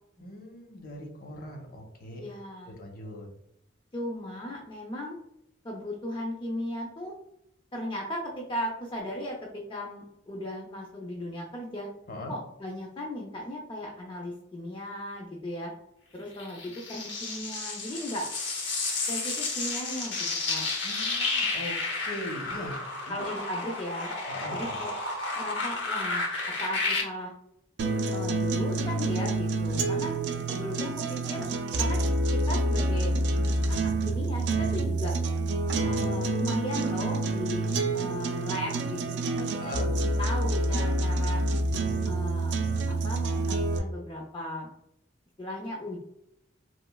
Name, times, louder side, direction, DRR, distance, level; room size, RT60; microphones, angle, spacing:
voice 1, 0.2-2.2 2.7-3.3 12.1-12.3 20.8-21.7 22.0-23.2 24.3-24.8 39.6-39.9, left 1 dB, 50° left, 1 dB, 0.7 m, -40 dB
voice 2, 2.2-2.8 3.9-5.2 5.6-7.1 7.7-11.9 12.3-15.7 16.1-18.3 19.1-20.1 20.5-20.7 23.1-24.1 24.5-24.9 25.3-26.3 26.6-27.3 28.1-30.2 30.5-31.5 31.8-32.0 32.3-33.1 33.7-35.2 35.9-37.7 37.9-39.9 40.2-41.4 42.1-42.6 42.9-44.7 45.4-46.0, equal, 25° left, -1 dB, 0.4 m, -36 dB
sound 1, 16.4-27.0, left 3 dB, 85° left, 0.8 m, -32 dB
sound 2, 27.8-43.8, right 2 dB, 70° right, 0.3 m, -27 dB
3.0 x 2.6 x 2.2 m, 0.80 s
head